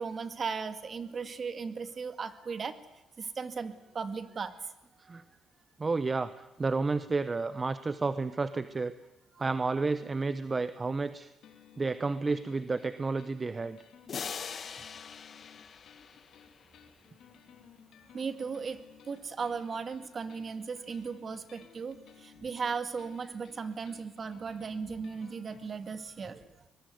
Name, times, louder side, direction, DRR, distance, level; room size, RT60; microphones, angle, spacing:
voice 1, 0.0-2.8 3.2-4.7 5.1-5.2 9.3-9.4 14.6-14.9 18.1-26.4, right 5 dB, 45° right, 11 dB, 2.1 m, -37 dB
voice 2, 5.8-6.3 6.6-8.9 9.4-11.3 11.8-13.8, right 3 dB, 30° right, 13 dB, 0.9 m, -31 dB
sound 1, 11.4-25.7, left 8 dB, 70° left, 3.4 m, -57 dB
sound 2, 14.1-16.8, left 6 dB, 50° left, 1.3 m, -42 dB
22.5 x 21.0 x 9.4 m, 0.91 s
cardioid pair, 90°, 0 cm